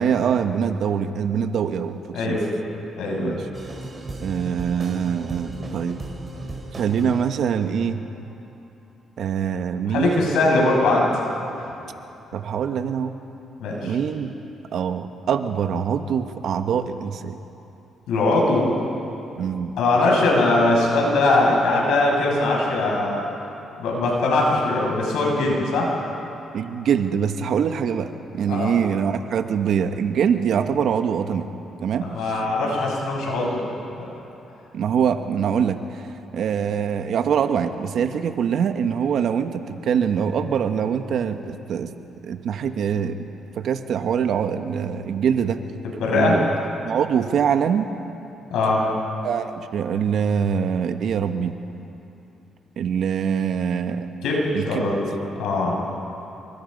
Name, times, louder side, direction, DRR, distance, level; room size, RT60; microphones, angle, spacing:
voice 1, 0.0-2.4 3.2-3.5 4.2-6.0 6.7-8.0 9.2-10.4 12.3-13.1 13.8-14.3 14.7-17.4 19.4-19.7 26.5-31.5 31.8-32.4 34.7-41.9 42.2-43.3 43.5-45.6 46.1-46.5 46.8-47.9 49.2-51.5 52.8-54.1 54.5-54.9, right 7 dB, 70° right, 8 dB, 1.3 m, -24 dB
voice 2, 3.0-3.3 9.9-11.0 11.6-11.7 13.6-14.0 18.1-18.7 19.8-23.2 23.8-25.9 28.5-28.7 32.1-33.6 46.0-46.4 48.5-48.8 54.2-55.0 55.4-55.8, left 2 dB, 85° left, -2 dB, 6.5 m, -21 dB
sound 1, 3.5-8.1, right 2 dB, 30° right, 4.5 m, -36 dB
27.0 x 23.5 x 5.4 m, 2.9 s
cardioid pair, 90°, 0 cm